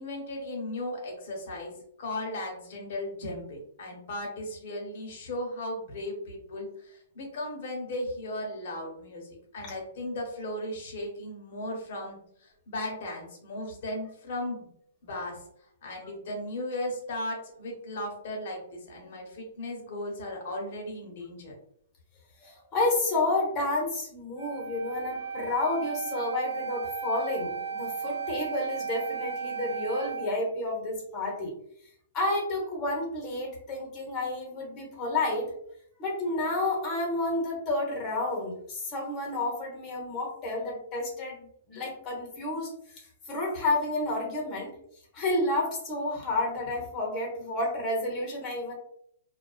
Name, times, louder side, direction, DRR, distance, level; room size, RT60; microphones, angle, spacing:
voice 1, 0.0-1.7 2.0-14.7 15.0-15.4 15.8-21.5, left 1 dB, 55° left, 0 dB, 0.8 m, -36 dB
voice 2, 22.4-31.5 32.1-35.5 36.0-42.7 43.0-44.7 45.1-48.7, left 2 dB, 25° left, -1 dB, 0.8 m, -30 dB
Wind instrument woodwind instrument, 24.3-30.3, right 6 dB, 45° right, 0.9 m, -35 dB
2.4 x 2.2 x 2.3 m, 0.69 s
hypercardioid pair, 150°, 0 cm